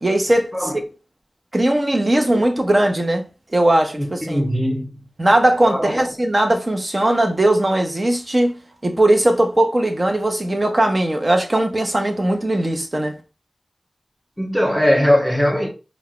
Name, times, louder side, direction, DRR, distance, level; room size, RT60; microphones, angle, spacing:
voice 1, 0.0-0.7 1.5-3.2 3.5-4.4 5.2-8.5 8.8-13.1, right 1 dB, 40° right, 0.9 m, -18 dB
voice 2, 4.0-4.9 5.6-6.0 14.4-15.7, equal, ahead, 1.7 m, -20 dB
4.5 x 2.3 x 3.0 m
cardioid pair, 45°, 0 cm